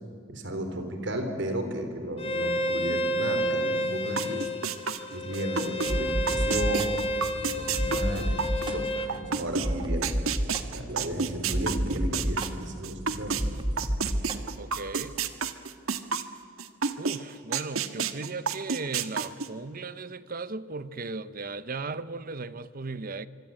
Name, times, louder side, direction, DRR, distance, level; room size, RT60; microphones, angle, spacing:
voice 1, 0.3-4.5 5.1-7.0 7.4-10.2 10.7-13.5, right 1 dB, 60° right, 3.9 m, -34 dB
Bowed string instrument, 2.2-9.1, equal, 30° left, 2.1 m, -30 dB
sound 1, 4.2-5.9 6.3-13.4 13.8-17.2 17.5-19.5, right 6 dB, 80° right, 1.4 m, -30 dB
sound 2, 5.9-14.4, equal, 25° right, 1.6 m, -32 dB
voice 2, 14.6-15.1 17.0-23.3, right 3 dB, 40° right, 0.9 m, -36 dB
25.5 x 24.5 x 9.0 m
head